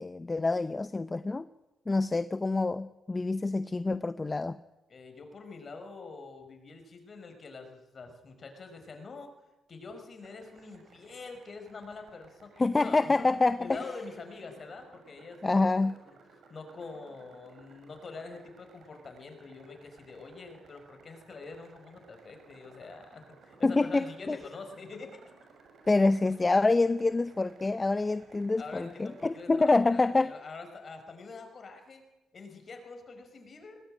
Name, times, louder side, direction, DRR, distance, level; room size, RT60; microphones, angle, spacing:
voice 1, 0.0-1.5 1.9-4.6 12.6-13.8 15.4-16.0 23.6-24.4 25.9-30.3, left 3 dB, 20° left, 14 dB, 0.7 m, -26 dB
voice 2, 4.9-9.3 9.7-13.3 13.6-16.1 16.5-25.1 28.6-32.0 32.3-33.8, left 4 dB, 40° left, 6 dB, 5.5 m, -45 dB
sound 1, 10.2-29.5, right 4 dB, 65° right, 6.8 m, -59 dB
20.0 x 19.0 x 9.1 m, 1.0 s
cardioid pair, 90°, 0 cm